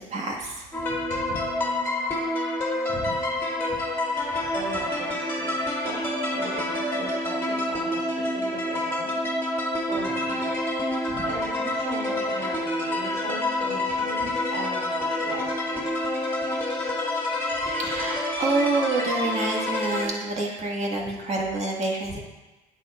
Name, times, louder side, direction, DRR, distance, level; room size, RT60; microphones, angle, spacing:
voice 1, 0.1-0.7 1.1-1.2 2.9-3.1 3.7-3.8 4.4-4.5 11.1-11.2 14.2-14.5 17.8-22.2, right 2 dB, 40° right, -1 dB, 1.8 m, -28 dB
sound 1, 0.7-20.1, left 1 dB, 15° left, 2.0 m, -28 dB
voice 2, 4.5-9.4 9.9-10.7 11.2-15.9, right 3 dB, 75° right, -3 dB, 3.0 m, -38 dB
9.5 x 8.3 x 2.5 m, 1.1 s
cardioid pair, 110°, 17 cm